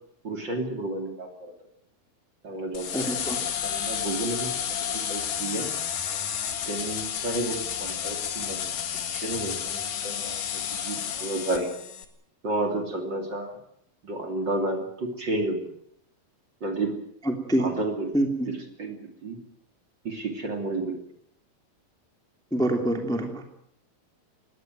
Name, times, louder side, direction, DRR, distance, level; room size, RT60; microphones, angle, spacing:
voice 1, 0.2-1.5 2.4-3.1 3.6-5.7 6.6-8.7 9.1-11.7 12.4-13.6 14.0-15.6 16.6-17.0 17.6-19.4 20.0-21.0, right 2 dB, 35° right, 4 dB, 3.3 m, -31 dB
sound 1, 2.7-12.0, left 9 dB, 70° left, 3.4 m, -31 dB
voice 2, 2.9-3.4 17.3-17.7 18.1-18.5 22.5-23.4, right 1 dB, ahead, 4 dB, 2.4 m, -25 dB
20.5 x 17.5 x 9.2 m, 0.71 s
omnidirectional pair, 4.0 m